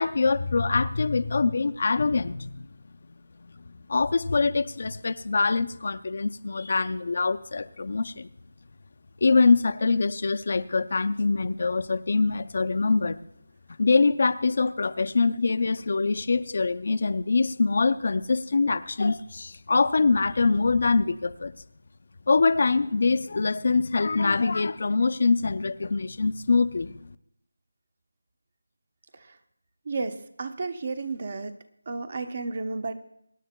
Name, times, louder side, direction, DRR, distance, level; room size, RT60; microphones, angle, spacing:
voice 1, 0.0-2.7 3.5-3.6 3.9-8.3 9.2-13.2 13.8-21.5 22.3-26.9, left 4 dB, 50° left, 11 dB, 0.5 m, -24 dB
voice 2, 29.9-31.5 31.9-32.9, right 3 dB, 40° right, 10 dB, 0.9 m, -32 dB
24.0 x 10.0 x 2.2 m, 0.76 s
figure-of-eight pair, 170°, 0 cm